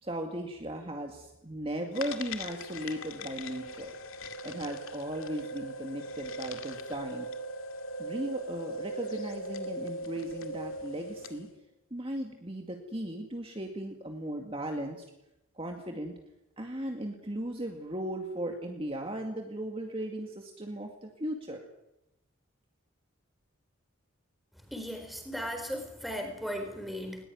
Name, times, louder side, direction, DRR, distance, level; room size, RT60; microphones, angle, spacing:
voice 1, 0.0-3.9 4.4-7.3 8.0-11.5 11.9-15.0 15.6-16.1 16.6-21.6, right 1 dB, 25° right, 2 dB, 2.2 m, -37 dB
sound 1, 1.9-11.5, equal, 70° left, 2.3 m, -40 dB
voice 2, 24.7-27.2, equal, ahead, 5 dB, 4.4 m, -37 dB
20.5 x 20.0 x 9.5 m, 0.88 s
head